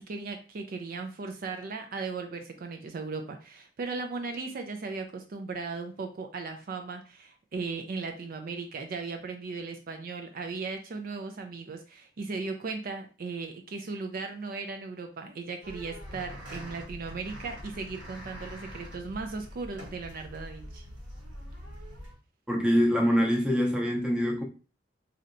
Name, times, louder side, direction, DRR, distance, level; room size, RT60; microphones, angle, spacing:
voice 1, 0.0-20.8, right 4 dB, 50° right, 0.4 m, -37 dB
sound 1, 15.6-22.1, equal, 85° right, 1.5 m, -44 dB
voice 2, 22.5-24.4, equal, 5° right, 0.6 m, -24 dB
3.2 x 2.7 x 2.5 m
head